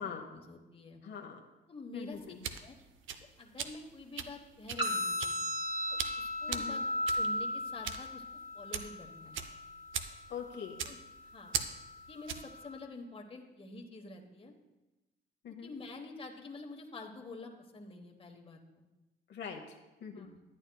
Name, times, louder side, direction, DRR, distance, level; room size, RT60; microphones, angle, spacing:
voice 1, 0.0-1.0 1.7-2.2 2.6-2.7 3.2-5.5 5.9-6.8 7.1-8.2 8.5-9.4 10.8-11.0 11.3-11.6 12.1-14.5 15.5-18.8 20.1-20.4, left 3 dB, 30° left, 2 dB, 1.1 m, -48 dB
voice 2, 1.0-1.4 1.9-2.4 6.5-6.8 10.3-10.7 15.4-15.7 19.3-19.8 20.0-20.3, left 7 dB, 60° left, 1 dB, 0.9 m, -42 dB
sound 1, 2.1-12.6, right 7 dB, 75° right, 0.6 m, -41 dB
sound 2, 4.8-12.8, left 1 dB, 20° right, 1.1 m, -37 dB
12.0 x 8.9 x 2.3 m, 1.1 s
cardioid pair, 90°, 20 cm